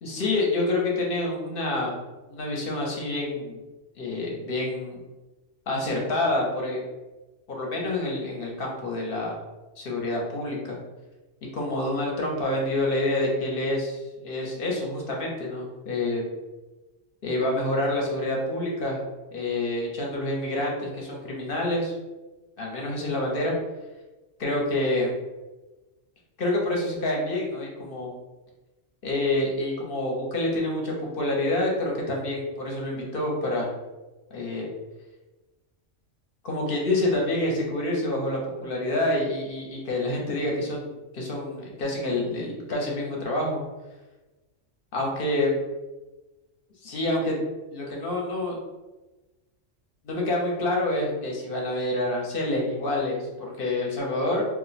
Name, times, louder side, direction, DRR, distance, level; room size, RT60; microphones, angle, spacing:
voice 1, 0.0-1.9 2.3-3.6 4.0-5.0 5.7-6.8 7.5-9.4 9.8-10.8 11.5-16.2 17.2-19.0 19.3-21.9 22.6-23.5 24.4-25.1 26.4-28.1 29.0-33.7 34.3-34.7 36.4-43.6 44.9-45.6 46.8-47.4 47.7-48.6 50.0-54.4, left 1 dB, 55° left, -1 dB, 0.8 m, -27 dB
2.4 x 2.1 x 3.9 m, 1.1 s
omnidirectional pair, 1.3 m